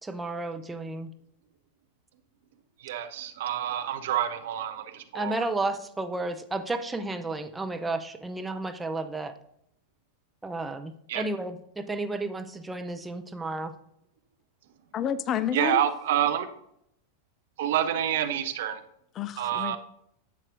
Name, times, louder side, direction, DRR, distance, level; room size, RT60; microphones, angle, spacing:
voice 1, 0.0-1.1 5.1-9.3 10.4-13.7, right 2 dB, 10° right, 0.6 m, -32 dB
voice 2, 2.8-5.4 11.1-11.2 15.5-16.5 17.6-18.8 19.4-19.8, right 10 dB, 55° right, 0.6 m, -28 dB
voice 3, 14.9-15.9 19.2-19.8, left 9 dB, 30° left, 0.4 m, -29 dB
10.5 x 7.4 x 2.6 m
figure-of-eight pair, 90°, 0 cm